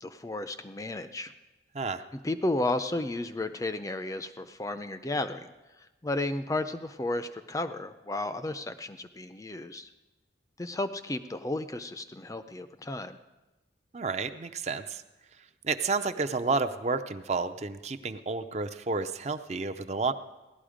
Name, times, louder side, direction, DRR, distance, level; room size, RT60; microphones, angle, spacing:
voice 1, 0.0-1.3 2.1-5.5 6.0-9.9 10.6-13.2, left 2 dB, 20° left, 10 dB, 0.5 m, -33 dB
voice 2, 13.9-15.0 15.6-20.1, right 4 dB, 35° right, 9 dB, 0.5 m, -30 dB
17.0 x 12.0 x 5.0 m, 1.1 s
head